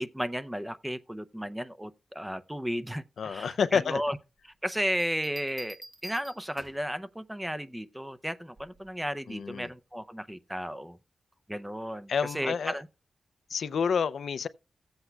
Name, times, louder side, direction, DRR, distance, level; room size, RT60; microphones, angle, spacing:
voice 1, 0.0-4.2 4.6-11.0 11.5-12.9, equal, 5° right, 0.6 m, -34 dB
voice 2, 3.2-4.0 9.3-9.7 12.1-12.8 13.5-14.5, left 6 dB, 75° left, 0.5 m, -29 dB
Bell, 5.0-6.9 8.6-8.9, right 1 dB, 40° right, 1.9 m, -48 dB
15.5 x 7.9 x 2.2 m
cardioid pair, 70°, 0 cm